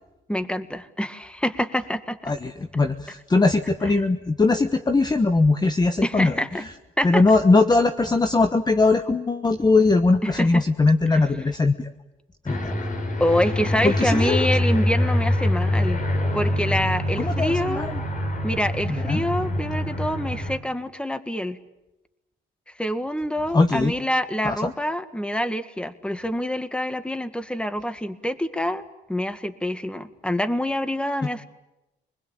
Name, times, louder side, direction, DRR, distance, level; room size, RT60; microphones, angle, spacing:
voice 1, 0.3-2.3 6.0-6.6 7.0-7.2 10.2-10.6 11.1-11.2 13.2-16.0 16.3-17.9 18.4-21.6 22.8-31.4, left 1 dB, 5° left, 10 dB, 1.9 m, -26 dB
voice 2, 2.3-6.4 7.0-11.9 12.4-12.8 13.8-14.4 17.2-18.0 18.9-19.2 23.5-23.9 24.4-24.7, left 3 dB, 20° left, 8 dB, 1.2 m, -20 dB
Aircraft, 12.5-20.6, left 1 dB, 40° left, 5.0 m, -25 dB
26.5 x 21.0 x 8.9 m, 0.95 s
cardioid pair, 90°, 20 cm